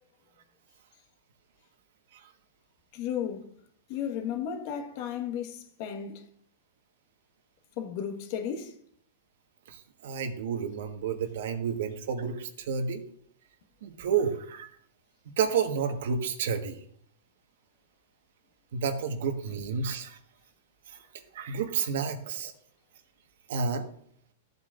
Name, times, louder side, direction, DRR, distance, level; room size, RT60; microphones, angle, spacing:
voice 1, 2.9-3.5 3.9-6.3 7.8-8.8, left 8 dB, 50° left, 1.5 m, -34 dB
voice 2, 9.7-13.0 13.8-14.7 15.4-16.8 18.7-20.2 21.3-22.5 23.5-23.9, right 6 dB, 70° right, 1.5 m, -30 dB
14.5 x 8.2 x 2.6 m
hypercardioid pair, 140°, 0 cm